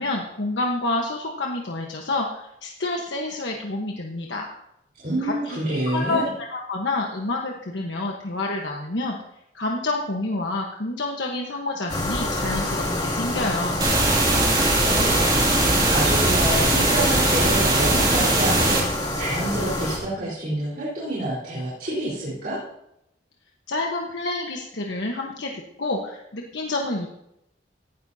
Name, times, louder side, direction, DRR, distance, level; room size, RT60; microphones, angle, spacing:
voice 1, 0.0-4.5 5.2-6.2 6.5-9.2 9.5-13.8 23.7-27.1, left 2 dB, 90° left, 0 dB, 1.2 m, -28 dB
voice 2, 5.0-6.3 14.8-22.6, right 1 dB, 55° right, -8 dB, 4.1 m, -28 dB
sound 1, 11.9-20.0, left 1 dB, 25° left, 2.5 m, -27 dB
sound 2, 13.8-18.8, right 2 dB, 25° right, 2.5 m, -20 dB
17.5 x 12.5 x 2.8 m, 0.81 s
head